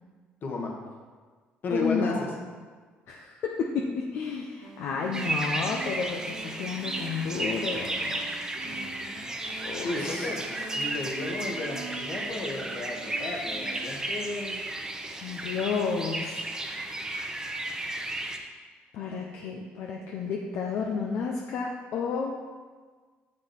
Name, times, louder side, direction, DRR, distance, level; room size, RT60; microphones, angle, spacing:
voice 1, 0.4-0.7 1.6-2.3 8.6-9.3 9.8-14.6, left 2 dB, 50° left, 0 dB, 1.6 m, -34 dB
voice 2, 1.7-2.3 3.1-8.2 9.6-10.3 15.2-16.5 17.2-17.6 18.9-22.3, left 5 dB, 70° left, 0 dB, 0.7 m, -31 dB
sound 1, 4.6-14.0, right 6 dB, 85° right, 1.0 m, -45 dB
sound 2, 5.1-18.4, right 1 dB, 15° right, 0.9 m, -34 dB
7.3 x 6.2 x 4.5 m, 1.5 s
supercardioid pair, 80°, 4 cm